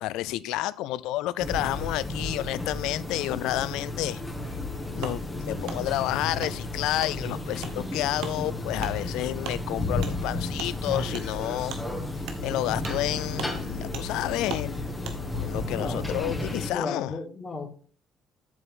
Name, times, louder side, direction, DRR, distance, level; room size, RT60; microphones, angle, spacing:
voice 1, 0.0-4.2 4.9-11.8 12.4-14.8 15.4-17.1, left 15 dB, 85° left, 0.4 m, -30 dB
sound 1, 1.4-16.7, left 2 dB, 15° left, 2.2 m, -33 dB
Wood, 5.0-5.2 5.7-5.8 6.4-6.5 7.0-7.1 7.6-7.7 8.2-8.4 8.8-8.9 9.4-9.6 10.0-10.1 10.6-10.7 11.1-11.3 11.7-11.8 12.2-12.4 12.8-13.0 13.3-13.5 13.9-14.1 14.5-14.7 15.0-15.2, right 7 dB, 80° right, 1.2 m, -38 dB
voice 2, 16.7-17.7, left 3 dB, 35° left, 2.5 m, -33 dB
8.4 x 7.0 x 3.8 m
supercardioid pair, 70°, 0 cm